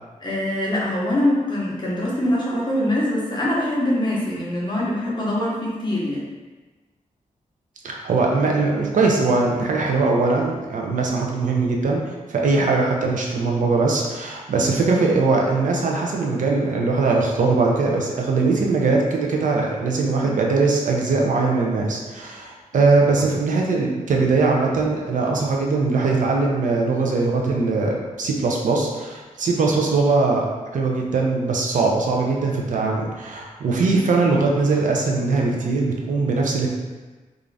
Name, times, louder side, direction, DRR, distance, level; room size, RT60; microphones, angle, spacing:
voice 1, 0.2-6.2 12.4-12.7, left 1 dB, 30° left, -5 dB, 0.6 m, -23 dB
voice 2, 7.8-36.7, right 3 dB, 65° right, 0 dB, 0.4 m, -21 dB
2.5 x 2.4 x 3.2 m, 1.3 s
wide cardioid pair, 180°, 14 cm